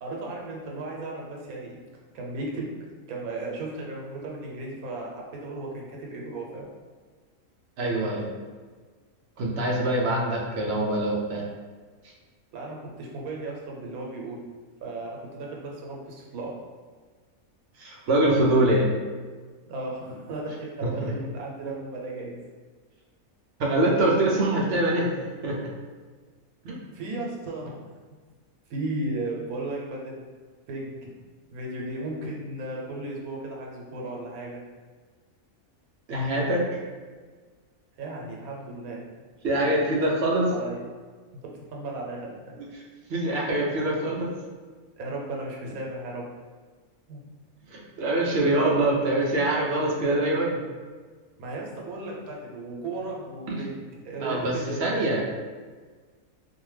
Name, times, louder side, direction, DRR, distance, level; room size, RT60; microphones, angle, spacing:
voice 1, 0.0-1.8 2.1-2.7 2.9-6.7 12.5-14.4 14.8-16.6 19.7-22.4 26.9-27.7 28.7-30.2 30.7-31.1 31.5-34.6 38.0-39.0 39.6-39.7 40.5-40.8 41.5-42.6 45.0-46.3 47.1-47.2 51.4-53.8 54.0-54.9, right 2 dB, 85° right, -2 dB, 1.1 m, -35 dB
voice 2, 7.8-8.2 9.4-11.4 17.8-18.9 20.8-21.1 23.6-25.1 25.4-25.6 26.6-26.8 36.1-36.7 39.4-40.5 43.1-44.3 47.7-50.6 53.5-53.6 54.2-54.5 54.8-55.2, right 1 dB, 65° right, -2 dB, 0.6 m, -24 dB
2.6 x 2.1 x 3.2 m, 1.5 s
omnidirectional pair, 1.5 m